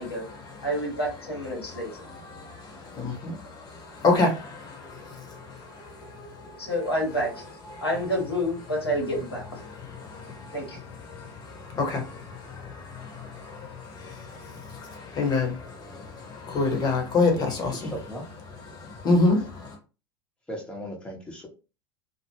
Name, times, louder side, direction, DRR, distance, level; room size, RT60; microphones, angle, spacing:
voice 1, 0.0-0.7 1.6-6.7 7.8-7.9 9.6-17.9 18.7-19.8, left 3 dB, 30° left, 1.0 m, -29 dB
voice 2, 0.6-2.0 6.6-7.5 7.8-9.7 10.5-10.9, equal, 85° left, 0.9 m, -29 dB
voice 3, 17.3-18.2 19.2-19.3 20.5-21.5, equal, 5° left, 0.8 m, -38 dB
2.2 x 2.1 x 3.2 m
figure-of-eight pair, 80°, 13 cm